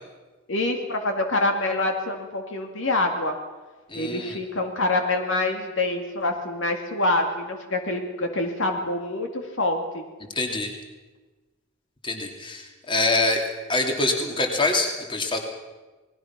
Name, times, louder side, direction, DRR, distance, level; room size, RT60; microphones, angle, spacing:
voice 1, 0.5-3.4 3.9-9.3 9.6-10.0, left 2 dB, 60° left, 4 dB, 2.3 m, -26 dB
voice 2, 3.9-4.4 10.3-10.7 12.0-13.4 13.7-15.4, left 2 dB, 25° left, 2 dB, 2.9 m, -25 dB
28.5 x 20.0 x 6.0 m, 1.2 s
head